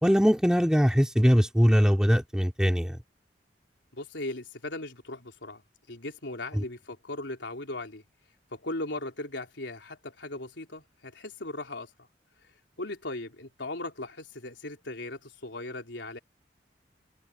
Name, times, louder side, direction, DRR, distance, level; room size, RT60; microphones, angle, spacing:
voice 1, 0.0-3.0 6.5-6.6, equal, 5° right, 3.2 m, -22 dB
voice 2, 3.9-5.6 5.9-8.0 8.5-11.9 12.8-16.2, left 2 dB, 90° left, 3.7 m, -38 dB
open air
head